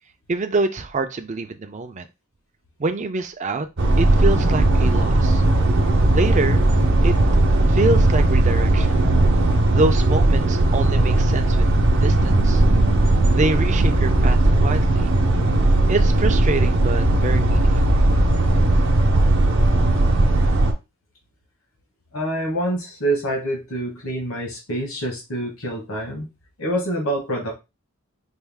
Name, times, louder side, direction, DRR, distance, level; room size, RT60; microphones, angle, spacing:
voice 1, 0.3-2.1 2.8-3.7 4.0-5.4 6.1-6.6 7.0-7.1 7.7-9.0 9.7-11.7 12.0-12.6 13.3-15.1 15.9-18.0, right 3 dB, 35° right, 7 dB, 0.4 m, -25 dB
sound 1, 3.8-20.7, right 2 dB, 55° right, 0.8 m, -17 dB
voice 2, 22.1-26.3 26.6-27.5, right 1 dB, 70° left, -1 dB, 1.3 m, -26 dB
4.4 x 2.3 x 3.5 m, 0.25 s
head